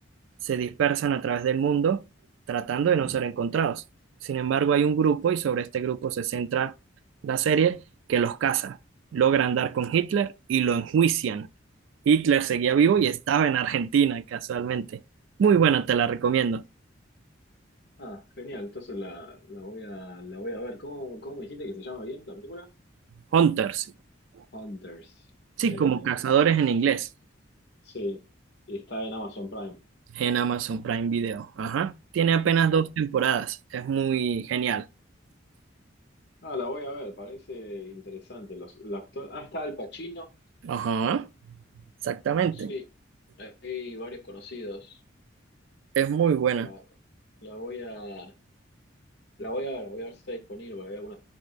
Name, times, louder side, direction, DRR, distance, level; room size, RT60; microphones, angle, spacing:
voice 1, 0.4-2.1 2.5-3.8 4.2-6.7 7.2-7.8 8.1-8.8 9.1-11.5 12.1-15.0 15.4-16.6 23.3-23.9 25.6-27.1 30.2-34.9 40.6-41.3 42.0-42.7 46.0-46.7, right 7 dB, 80° right, 0.3 m, -24 dB
voice 2, 18.0-22.7 24.5-25.3 25.6-26.3 27.8-28.2 28.7-29.8 32.6-32.9 36.4-40.3 42.5-42.8 43.4-45.0 46.6-46.8 47.4-48.3 49.4-51.2, left 1 dB, 55° left, 1.0 m, -37 dB
5.0 x 2.6 x 3.9 m
head